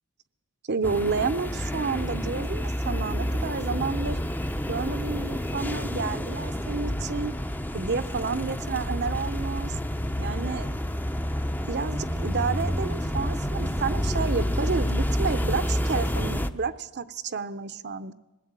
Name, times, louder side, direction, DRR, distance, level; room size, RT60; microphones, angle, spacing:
voice 1, 0.7-4.2 4.7-7.3 7.7-9.8 10.2-10.7 11.7-18.1, right 5 dB, 50° right, 11 dB, 0.7 m, -30 dB
sound 1, 0.8-16.5, equal, 10° left, 0.7 m, -29 dB
20.0 x 15.5 x 8.9 m, 1.1 s
head